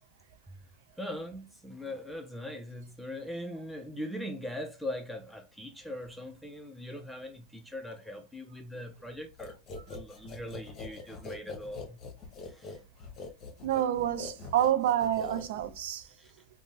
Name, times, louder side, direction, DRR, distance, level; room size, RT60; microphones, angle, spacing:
voice 1, 1.0-9.5 9.9-12.0 12.5-12.8 16.2-16.3, left 1 dB, ahead, 0.5 m, -41 dB
sound 1, 9.4-15.9, left 4 dB, 45° left, 0.8 m, -44 dB
voice 2, 13.6-16.1, right 11 dB, 75° right, 0.4 m, -28 dB
2.5 x 2.2 x 3.3 m
hypercardioid pair, 90°, 0 cm